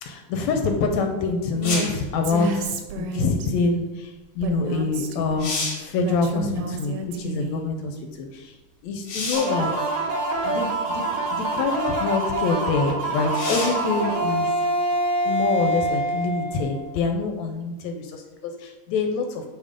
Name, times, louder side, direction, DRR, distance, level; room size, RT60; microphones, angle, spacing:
voice 1, 0.0-8.5 8.8-9.7 10.4-11.0 11.3-14.5 15.2-19.4, left 4 dB, 80° left, 5 dB, 1.7 m, -26 dB
Female speech woman speaking, 1.5-1.9 2.2-3.5 4.4-5.5 6.0-7.6, right 2 dB, 90° right, 2.4 m, -31 dB
sound 1, 1.6-2.1 4.7-4.8 5.2-5.9 9.1-9.6 10.6-10.7 13.3-13.9 17.5-17.6, left 3 dB, 60° left, 1.0 m, -29 dB
sound 2, 9.3-16.9, right 2 dB, 65° right, 2.3 m, -25 dB
8.7 x 3.4 x 5.1 m, 1.1 s
omnidirectional pair, 3.7 m